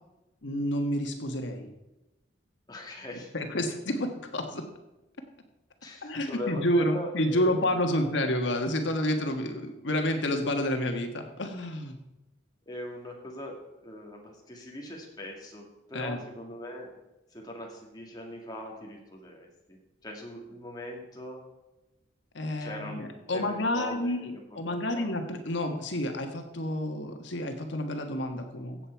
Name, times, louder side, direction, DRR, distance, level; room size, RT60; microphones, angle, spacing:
voice 1, 0.4-1.7 3.3-4.7 6.0-12.0 15.9-16.2 22.3-28.8, left 1 dB, 75° left, 4 dB, 1.5 m, -29 dB
voice 2, 2.7-3.3 5.8-8.2 12.7-13.6 13.8-16.9 17.3-21.5 22.6-24.1 24.7-25.1, left 1 dB, 20° left, 0 dB, 2.1 m, -41 dB
15.5 x 7.6 x 4.6 m, 1.0 s
head